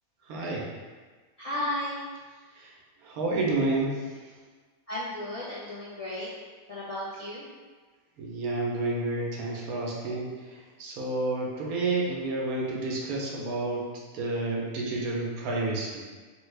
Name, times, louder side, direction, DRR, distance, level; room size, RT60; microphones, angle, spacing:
voice 1, 0.2-0.7 2.6-2.7 3.0-4.2 8.2-13.9 14.1-16.0, right 2 dB, 90° right, -3 dB, 1.1 m, -30 dB
voice 2, 1.4-2.0 4.9-6.3 6.7-7.4, left 1 dB, 40° left, -11 dB, 0.5 m, -34 dB
3.2 x 2.3 x 3.2 m, 1.4 s
omnidirectional pair, 1.5 m